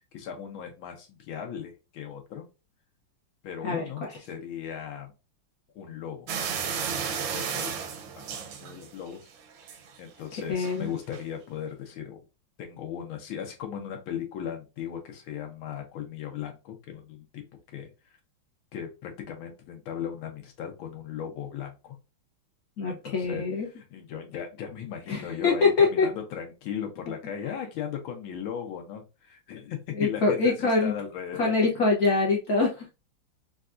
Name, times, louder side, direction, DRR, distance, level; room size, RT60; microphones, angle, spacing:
voice 1, 0.1-2.5 3.4-5.1 5.8-6.3 7.0-7.8 8.2-9.2 10.0-12.2 12.6-17.4 17.7-17.9 18.7-22.0 22.9-23.4 23.8-31.6, left 8 dB, 75° left, 1.7 m, -37 dB
sound 1, 6.3-9.1 9.5-10.0 10.6-10.8 11.1-11.2, right 7 dB, 75° right, 1.4 m, -33 dB
voice 2, 10.5-10.9 22.8-23.7 25.1-26.1 30.0-30.9 31.3-32.9, left 4 dB, 60° left, 1.1 m, -24 dB
4.6 x 2.3 x 2.5 m
omnidirectional pair, 2.3 m